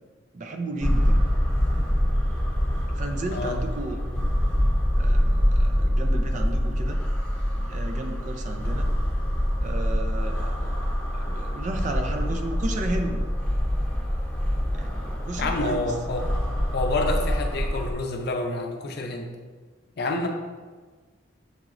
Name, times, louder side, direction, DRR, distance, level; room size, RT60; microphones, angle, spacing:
voice 1, 0.3-1.2 2.9-4.0 5.0-7.0 7.5-8.9 9.6-13.3 14.7-15.9, right 2 dB, 40° right, 4 dB, 0.4 m, -34 dB
sound 1, 0.8-17.9, equal, 5° left, 0.8 m, -25 dB
voice 2, 15.4-16.3 16.7-19.3 20.0-20.3, left 2 dB, 55° left, 3 dB, 0.5 m, -28 dB
6.6 x 2.9 x 2.5 m, 1.4 s
head